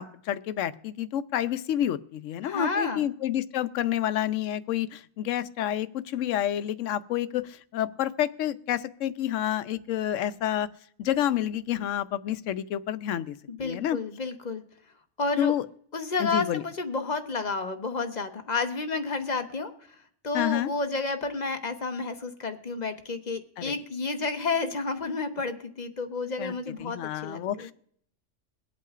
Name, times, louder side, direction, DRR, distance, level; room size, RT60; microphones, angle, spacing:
voice 1, 0.0-10.7 11.0-13.4 13.6-14.0 15.4-15.7 16.2-16.6 20.3-20.7 23.6-23.8 26.4-26.5 26.8-27.7, left 11 dB, 90° left, 14 dB, 0.9 m, -29 dB
voice 2, 2.4-3.1 13.5-14.6 15.2-15.5 15.9-19.7 20.2-27.7, left 3 dB, 40° left, 7 dB, 0.9 m, -31 dB
22.5 x 8.4 x 2.4 m, 0.63 s
omnidirectional pair, 1.3 m